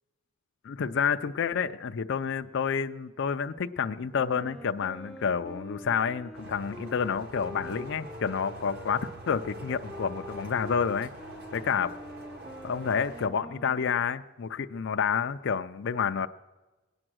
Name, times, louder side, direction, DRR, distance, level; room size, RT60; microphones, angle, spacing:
voice 1, 0.6-11.1 11.5-11.9 12.6-16.3, left 6 dB, 55° left, 8 dB, 0.4 m, -29 dB
Bowed string instrument, 4.0-7.8, right 3 dB, 30° right, 1.5 m, -58 dB
Wind instrument woodwind instrument, 4.1-14.2, equal, 5° left, 0.5 m, -45 dB
sound 1, 6.3-13.3, right 2 dB, 50° right, 1.6 m, -45 dB
22.0 x 8.8 x 6.2 m, 1.2 s
head